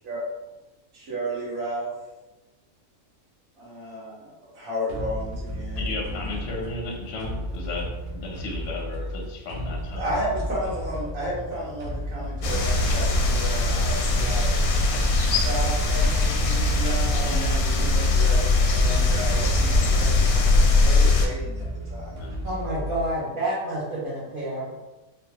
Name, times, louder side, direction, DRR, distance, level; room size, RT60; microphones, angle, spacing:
voice 1, 0.9-1.9 3.6-6.3 9.9-14.6 15.4-21.6 21.9-22.2, right 1 dB, 65° right, -6 dB, 1.5 m, -33 dB
sound 1, 4.9-23.3, equal, 90° right, 1.1 m, -34 dB
voice 2, 5.8-10.3 14.9-15.2 17.1-18.0 22.1-22.5, left 2 dB, 60° left, -1 dB, 0.8 m, -35 dB
sound 2, 12.4-21.3, left 2 dB, 90° left, 1.1 m, -21 dB
voice 3, 22.4-24.8, right 1 dB, 45° right, -8 dB, 0.7 m, -29 dB
3.1 x 2.2 x 2.8 m, 1.1 s
omnidirectional pair, 1.5 m